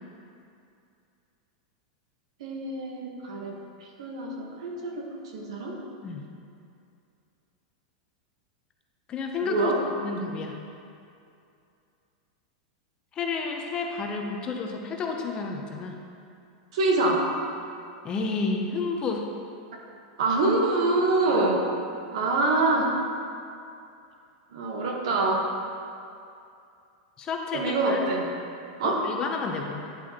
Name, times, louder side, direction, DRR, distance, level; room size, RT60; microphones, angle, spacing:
voice 1, 2.4-3.6 4.0-5.1 5.3-5.7 9.4-9.8 16.7-17.3 20.2-21.7 22.1-23.0 24.5-25.5 27.5-28.3 28.8-29.1, right 2 dB, 75° right, 0 dB, 1.2 m, -25 dB
voice 2, 9.1-9.7 10.0-10.6 13.1-16.0 18.0-19.3 21.3-21.4 27.2-28.0 28.8-29.8, left 4 dB, 25° left, 2 dB, 0.7 m, -31 dB
10.0 x 4.5 x 2.9 m, 2.5 s
supercardioid pair, 140°, 3 cm